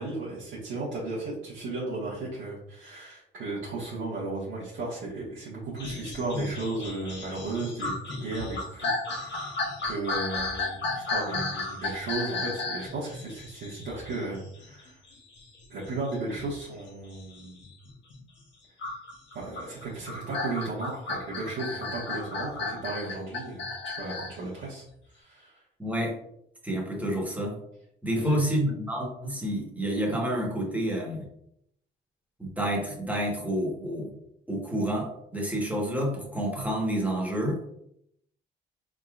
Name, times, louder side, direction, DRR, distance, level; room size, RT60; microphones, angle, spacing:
voice 1, 0.0-15.0 15.7-17.7 19.3-24.8 25.1-25.6 28.2-28.4, right 2 dB, 80° right, -8 dB, 1.3 m, -35 dB
sound 1, 5.8-18.2 18.8-24.4 24.9-25.0, left 3 dB, 65° left, 1.2 m, -34 dB
voice 2, 25.8-26.1 26.6-27.6 28.0-31.2 32.4-34.1 34.5-37.6, equal, 5° right, -1 dB, 1.3 m, -29 dB
3.8 x 3.7 x 2.4 m, 0.74 s
cardioid pair, 90°, 20 cm